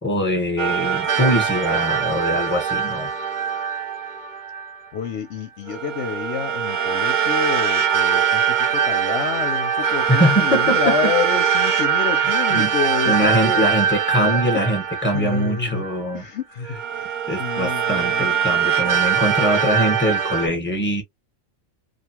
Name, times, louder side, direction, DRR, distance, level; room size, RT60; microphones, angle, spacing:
voice 1, 0.0-3.1 10.1-11.1 12.5-12.7 13.1-16.2 17.3-21.0, equal, 10° left, 1.1 m, -22 dB
sound 1, 0.6-4.8 5.7-16.1 16.6-20.5, right 7 dB, 75° right, 0.4 m, -22 dB
voice 2, 4.9-13.7 14.2-14.4 15.1-15.8 16.1-18.9, left 6 dB, 65° left, 0.8 m, -28 dB
2.4 x 2.2 x 2.8 m
omnidirectional pair, 1.4 m